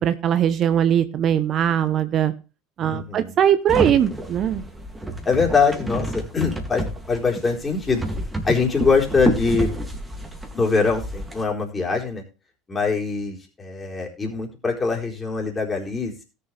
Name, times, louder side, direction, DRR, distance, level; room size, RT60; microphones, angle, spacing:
voice 1, 0.0-2.3 2.8-4.6, right 9 dB, 45° right, 12 dB, 0.8 m, -20 dB
voice 2, 2.9-3.3 5.2-8.0 8.4-9.7 10.5-12.2 12.7-16.2, left 4 dB, 20° left, 0 dB, 4.2 m, -23 dB
sound 1, 3.7-11.4, right 1 dB, 10° right, 2.5 m, -29 dB
17.5 x 6.9 x 3.4 m, 0.31 s
figure-of-eight pair, 70°, 0 cm